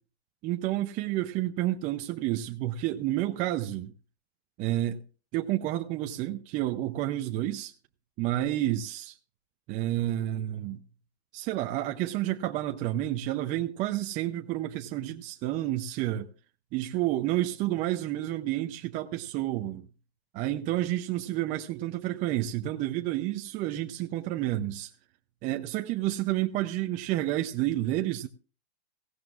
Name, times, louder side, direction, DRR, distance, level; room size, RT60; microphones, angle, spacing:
voice 1, 0.4-3.9 4.6-5.0 5.3-7.7 8.2-9.2 9.7-10.8 11.3-16.3 16.7-19.9 20.3-24.9 25.4-28.3, right 14 dB, 25° right, 0.6 m, -30 dB
18.0 x 16.0 x 2.4 m
hypercardioid pair, 150°, 32 cm